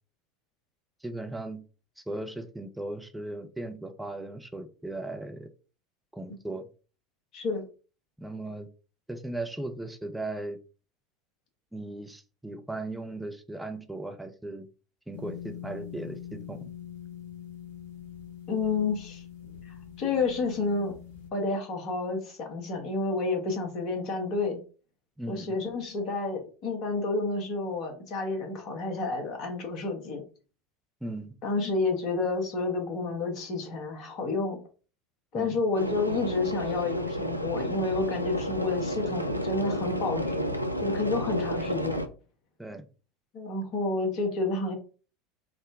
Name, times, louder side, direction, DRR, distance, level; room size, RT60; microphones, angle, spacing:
voice 1, 1.0-1.6 2.0-5.5 6.1-6.7 8.2-8.7 9.1-10.6 11.7-14.7 15.1-16.7 25.2-25.6 31.0-31.3 35.3-35.6 42.6-42.9, right 2 dB, 5° right, 6 dB, 0.5 m, -37 dB
voice 2, 7.3-7.6 18.5-19.2 19.6-20.9 21.3-24.6 25.3-30.2 31.4-34.6 35.3-40.5 40.8-42.0 43.3-44.8, left 3 dB, 45° left, 2 dB, 1.0 m, -30 dB
sound 1, 15.1-21.3, left 10 dB, 65° left, 0.8 m, -43 dB
sound 2, 35.7-42.1, equal, 90° left, 0.3 m, -31 dB
3.7 x 2.1 x 3.4 m, 0.37 s
figure-of-eight pair, 75°, 0 cm